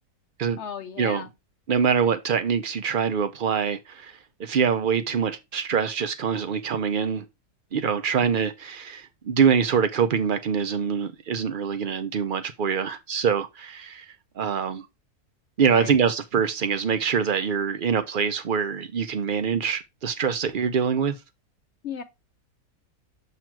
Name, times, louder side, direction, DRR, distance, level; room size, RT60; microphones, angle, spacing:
voice 1, 0.6-1.3 15.6-16.0 21.8-22.0, left 7 dB, 55° left, 1.0 m, -35 dB
voice 2, 1.7-4.1 4.4-7.2 7.7-14.1 14.4-14.8 15.6-21.2, right 6 dB, 75° right, 0.4 m, -24 dB
7.4 x 3.1 x 4.5 m
omnidirectional pair, 1.7 m